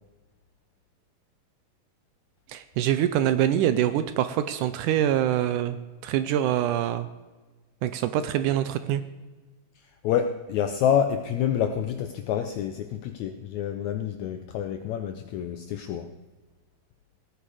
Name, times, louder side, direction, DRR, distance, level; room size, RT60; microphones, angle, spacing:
voice 1, 2.5-7.1 7.8-9.0, right 11 dB, 80° right, 12 dB, 2.0 m, -25 dB
voice 2, 10.0-16.1, left 9 dB, 80° left, 8 dB, 1.6 m, -27 dB
17.5 x 9.8 x 4.9 m, 1.3 s
omnidirectional pair, 4.0 m